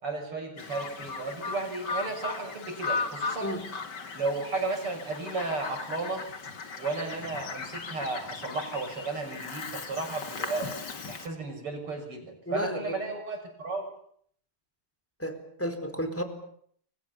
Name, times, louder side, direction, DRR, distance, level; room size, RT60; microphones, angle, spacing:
voice 1, 0.0-3.5 4.1-6.2 6.8-10.7 11.1-13.9, right 3 dB, 80° right, 4 dB, 7.7 m, -34 dB
Bird vocalization bird call bird song, 0.6-11.3, left 4 dB, 50° left, 2.8 m, -37 dB
voice 2, 12.5-12.9 15.2-16.2, equal, 5° left, 7 dB, 4.3 m, -32 dB
29.5 x 24.0 x 7.1 m, 0.64 s
omnidirectional pair, 2.4 m